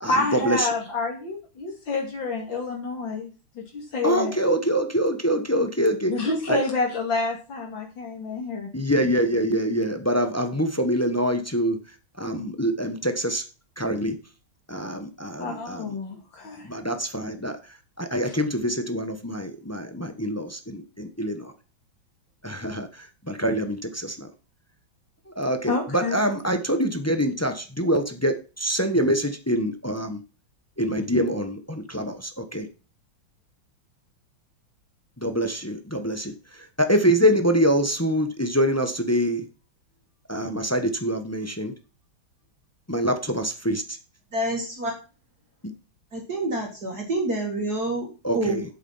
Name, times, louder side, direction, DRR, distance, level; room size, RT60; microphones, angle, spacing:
voice 1, 0.1-4.4 6.1-8.7 15.4-16.7 18.2-18.4 25.7-26.2, left 3 dB, 65° left, 1 dB, 3.0 m, -28 dB
voice 2, 4.0-6.1 6.5-6.6 8.7-11.8 12.2-13.4 13.8-14.1 14.7-15.8 16.6-17.6 18.0-21.5 22.4-22.9 23.3-24.3 25.4-30.2 30.8-32.7 35.2-36.3 36.8-39.4 40.3-41.7 42.9-43.8 48.2-48.6, equal, 15° left, 7 dB, 0.6 m, -25 dB
voice 3, 44.3-44.9 46.1-48.1 48.3-48.6, right 1 dB, 50° right, 1 dB, 2.6 m, -27 dB
8.2 x 7.9 x 5.6 m, 0.33 s
omnidirectional pair, 2.2 m